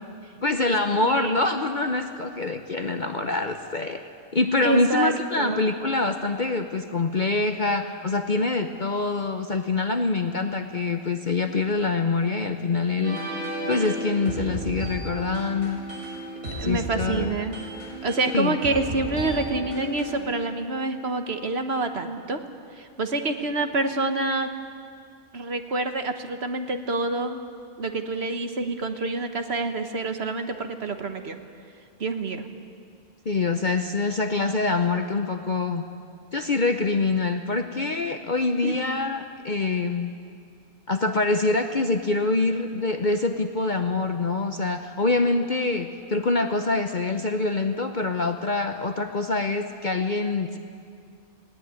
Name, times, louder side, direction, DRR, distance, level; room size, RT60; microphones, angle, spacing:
voice 1, 0.4-4.0 4.3-13.2 13.7-15.8 16.6-17.4 18.3-18.6 33.3-35.8 36.3-40.1 40.9-50.6, left 3 dB, 40° left, 6 dB, 0.8 m, -25 dB
voice 2, 1.0-1.3 4.6-5.7 16.6-17.6 18.0-22.4 22.7-24.5 25.3-27.4 27.8-31.4 32.0-32.4 38.6-38.8, right 2 dB, 50° right, 7 dB, 1.4 m, -27 dB
sound 1, 13.0-20.2, right 1 dB, 80° right, 7.4 m, -34 dB
19.0 x 17.5 x 9.6 m, 2.3 s
omnidirectional pair, 1.5 m